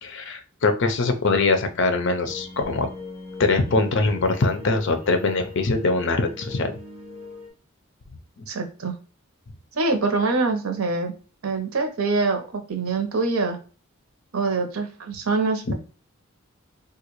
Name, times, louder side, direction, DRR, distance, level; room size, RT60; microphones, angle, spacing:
voice 1, 0.0-2.9 3.4-6.7 8.4-8.5 15.7-15.8, left 3 dB, 60° left, 7 dB, 0.6 m, -22 dB
sound 1, 2.2-7.5, left 3 dB, 30° right, 1.0 m, -39 dB
voice 2, 8.5-8.9 9.7-11.1 11.4-13.6 14.3-15.7, right 3 dB, 85° right, 6 dB, 0.7 m, -24 dB
3.8 x 2.3 x 3.0 m, 0.38 s
head